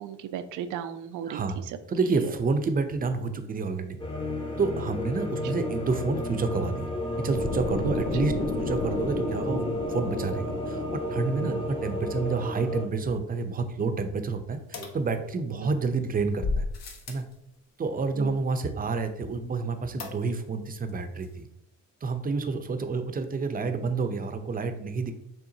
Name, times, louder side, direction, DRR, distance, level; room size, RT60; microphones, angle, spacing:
voice 1, 0.0-1.4 2.2-2.3 11.4-11.9 15.6-15.7 18.1-18.4, right 9 dB, 80° right, 11 dB, 0.5 m, -36 dB
voice 2, 1.3-1.6 1.9-4.0 4.6-6.9 7.2-9.6 9.9-16.7 17.1-17.2 17.8-21.5 22.0-25.1, right 4 dB, 30° right, 8 dB, 0.6 m, -29 dB
sound 1, 4.0-12.9, left 1 dB, 15° left, 0.8 m, -32 dB
sound 2, 7.3-13.4, left 2 dB, 85° left, 1.2 m, -34 dB
sound 3, 14.7-15.7 16.4-17.3 20.0-20.6 20.9-21.0 21.2-21.3, left 3 dB, 60° left, 1.0 m, -34 dB
5.7 x 3.4 x 2.7 m, 0.78 s
cardioid pair, 90°, 30 cm